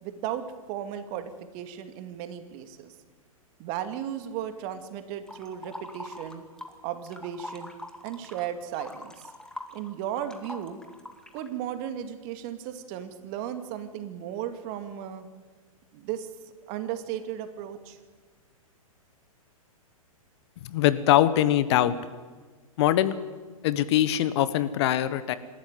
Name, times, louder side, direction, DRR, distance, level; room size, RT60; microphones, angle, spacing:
voice 1, 0.0-2.9 3.6-6.4 6.8-7.7 8.0-9.3 9.7-10.8 11.3-15.3 15.9-16.3 16.7-18.0, right 10 dB, 40° right, 8 dB, 2.3 m, -35 dB
sound 1, 5.3-6.8 7.0-11.5, left 1 dB, 5° left, 2.2 m, -42 dB
voice 2, 20.6-21.9 22.8-23.1 23.6-25.3, left 12 dB, 50° left, 14 dB, 1.3 m, -22 dB
26.5 x 13.0 x 9.3 m, 1.4 s
figure-of-eight pair, 115°, 18 cm